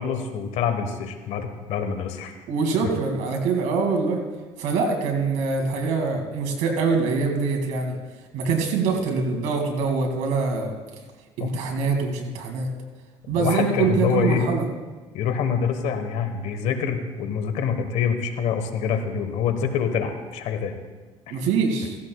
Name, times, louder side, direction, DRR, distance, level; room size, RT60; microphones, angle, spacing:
voice 1, 0.0-2.3 2.8-2.9 11.4-11.5 13.3-14.4 15.1-20.8 21.3-21.4, left 7 dB, 75° left, 7 dB, 1.3 m, -26 dB
voice 2, 2.5-4.2 4.6-8.0 8.3-10.8 11.4-12.7 13.3-14.6 21.3-22.0, right 4 dB, 85° right, 2 dB, 2.4 m, -24 dB
16.0 x 15.5 x 2.4 m, 1.3 s
cardioid pair, 120°, 12 cm